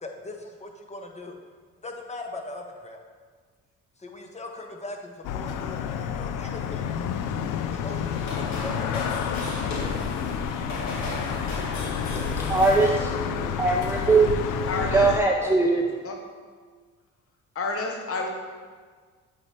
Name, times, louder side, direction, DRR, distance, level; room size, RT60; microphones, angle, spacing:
voice 1, 0.0-1.4 1.8-3.0 4.0-6.9 7.7-9.9, left 2 dB, 20° left, 3 dB, 0.9 m, -40 dB
sound 1, 5.2-15.2, left 8 dB, 85° left, 0.5 m, -30 dB
sound 2, 7.7-13.1, left 1 dB, 65° left, 1.5 m, -35 dB
voice 2, 12.1-16.0, right 3 dB, 10° right, 0 dB, 0.4 m, -22 dB
voice 3, 14.7-15.1 16.0-16.1 17.6-18.3, left 3 dB, 50° left, 2 dB, 1.1 m, -29 dB
8.5 x 3.3 x 4.3 m, 1.6 s
cardioid pair, 90°, 30 cm